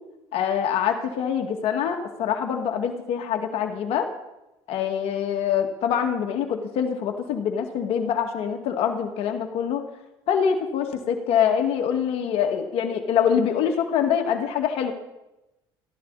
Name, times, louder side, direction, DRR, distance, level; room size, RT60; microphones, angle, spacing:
voice 1, 0.3-4.1 4.7-9.8 10.3-14.9, left 8 dB, 70° left, 4 dB, 2.2 m, -24 dB
29.5 x 11.5 x 4.2 m, 0.96 s
supercardioid pair, 90°, 10 cm